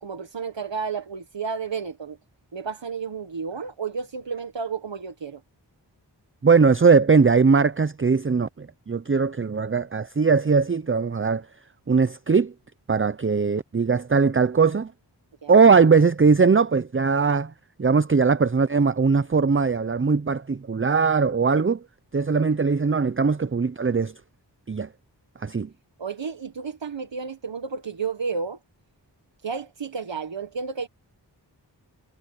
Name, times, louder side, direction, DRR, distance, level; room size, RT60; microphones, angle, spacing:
voice 1, 0.0-2.2 2.5-5.4 15.4-15.8 26.0-28.6 29.4-30.9, right 5 dB, 80° right, 1.6 m, -32 dB
voice 2, 6.4-11.5 11.9-12.5 12.9-14.9 15.5-17.5 17.8-21.8 22.1-24.1 24.7-24.9 25.4-25.7, right 5 dB, 30° right, 0.7 m, -20 dB
wide cardioid pair, 40°, 44 cm